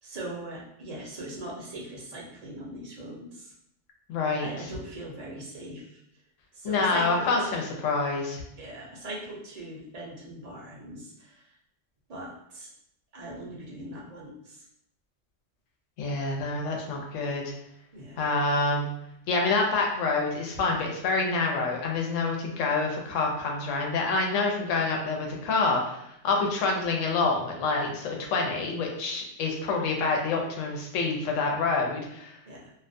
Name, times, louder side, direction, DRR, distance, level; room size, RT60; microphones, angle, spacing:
voice 1, 0.0-3.5 4.4-6.0 6.5-7.3 8.6-11.6 12.1-12.7 13.1-14.7 17.9-18.4 32.5-32.7, right 1 dB, 45° right, -3 dB, 0.5 m, -40 dB
voice 2, 4.1-4.5 6.6-8.4 16.0-17.5 18.2-18.9 19.3-32.4, left 3 dB, 90° left, 0 dB, 0.9 m, -27 dB
2.4 x 2.2 x 2.5 m, 0.76 s
omnidirectional pair, 1.3 m